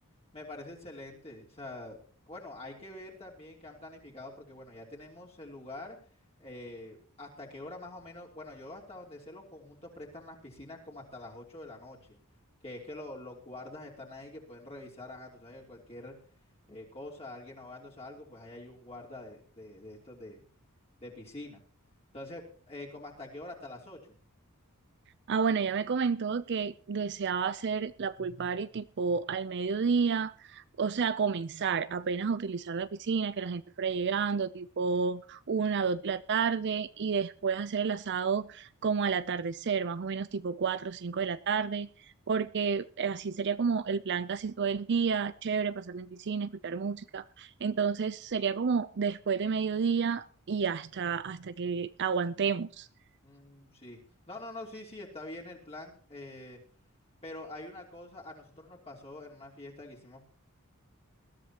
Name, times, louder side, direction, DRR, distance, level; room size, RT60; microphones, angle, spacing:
voice 1, 0.3-2.0 2.3-6.0 6.4-12.2 12.6-16.1 16.7-20.4 21.0-21.6 22.1-24.1 53.2-54.0 54.3-56.6 57.2-60.2, left 2 dB, 30° left, -2 dB, 3.1 m, -45 dB
voice 2, 25.3-52.9, right 5 dB, 55° right, 14 dB, 0.5 m, -31 dB
21.0 x 13.5 x 2.9 m, 0.44 s
head